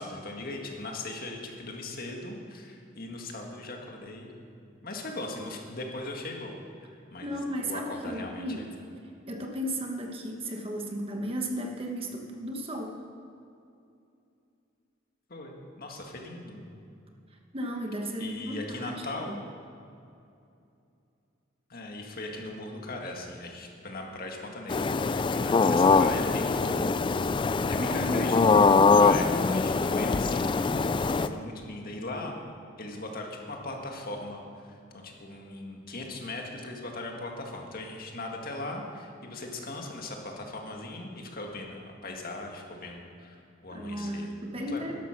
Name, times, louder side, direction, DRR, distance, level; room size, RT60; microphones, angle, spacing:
voice 1, 0.0-4.3 4.8-6.6 7.1-7.3 7.6-8.8 15.3-16.7 18.2-19.4 21.7-26.9 27.7-32.4 32.8-44.9, left 2 dB, 50° left, 1 dB, 1.8 m, -39 dB
voice 2, 7.2-8.7 9.3-12.9 17.5-19.3 27.8-28.8 43.7-44.9, equal, 30° right, 2 dB, 1.3 m, -35 dB
sound 1, 24.7-31.3, left 4 dB, 25° left, 0.3 m, -23 dB
12.5 x 11.5 x 5.9 m, 2.6 s
head